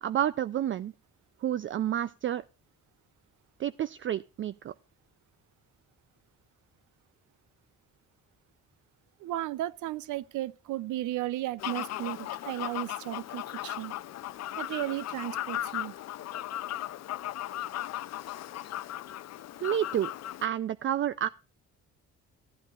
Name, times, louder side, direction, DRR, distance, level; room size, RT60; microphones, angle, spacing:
voice 1, 0.0-0.9 1.4-2.4 3.6-4.7 19.6-20.1 20.4-21.3, right 11 dB, 40° right, 0.4 m, -29 dB
voice 2, 9.2-13.9 14.6-15.9, right 15 dB, 85° right, 0.6 m, -34 dB
Fowl, 11.6-20.5, left 13 dB, 60° left, 0.5 m, -37 dB
15.0 x 9.0 x 2.4 m
cardioid pair, 90°, 30 cm